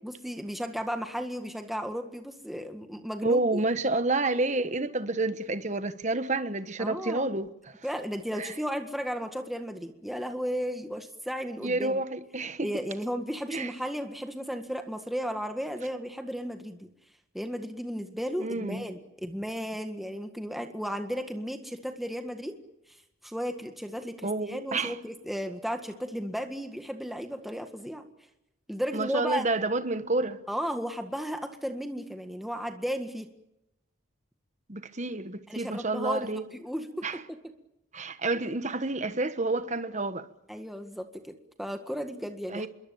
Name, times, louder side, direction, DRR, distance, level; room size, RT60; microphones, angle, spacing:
voice 1, 0.0-3.6 6.8-7.3 7.8-12.0 12.6-16.9 17.3-22.6 23.2-28.0 28.7-29.5 30.5-33.3 35.5-37.4 40.5-42.7, equal, ahead, 1.7 m, -34 dB
voice 2, 3.2-7.8 8.4-8.5 11.6-12.7 13.5-13.7 18.4-18.8 24.2-25.0 28.9-30.4 34.7-36.4 37.0-37.2 37.9-40.3 42.5-42.7, right 2 dB, 35° right, 1.2 m, -29 dB
26.5 x 22.5 x 7.1 m
head